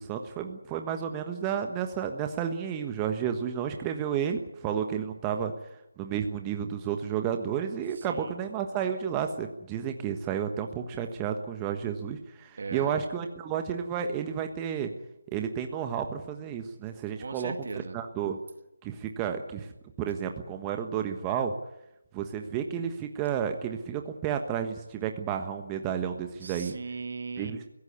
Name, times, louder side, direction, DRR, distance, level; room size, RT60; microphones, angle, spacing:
voice 1, 0.0-5.5 6.0-14.9 15.3-17.5 17.9-18.4 18.8-19.7 20.0-21.5 22.1-26.7 27.4-27.7, right 8 dB, 15° right, 5 dB, 1.4 m, -31 dB
voice 2, 12.6-12.9 17.2-18.0 26.4-27.5, right 4 dB, 55° right, 9 dB, 2.2 m, -37 dB
22.5 x 17.0 x 9.7 m, 0.89 s
figure-of-eight pair, 155°, 0 cm